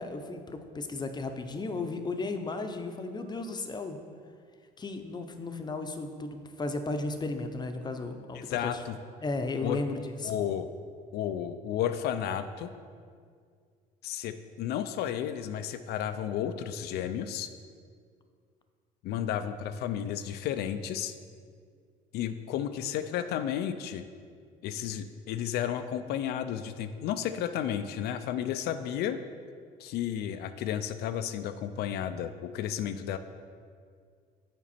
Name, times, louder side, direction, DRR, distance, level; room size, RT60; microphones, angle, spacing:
voice 1, 0.0-4.0 4.8-8.7 9.2-10.4, left 3 dB, 25° left, 7 dB, 0.6 m, -35 dB
voice 2, 8.3-9.0 9.6-10.7 11.1-12.7 14.0-17.5 19.0-21.2 22.1-24.0 24.6-29.2 29.8-33.2, left 10 dB, 70° left, 10 dB, 0.4 m, -32 dB
7.3 x 5.1 x 4.2 m, 2.1 s
supercardioid pair, 90°, 17 cm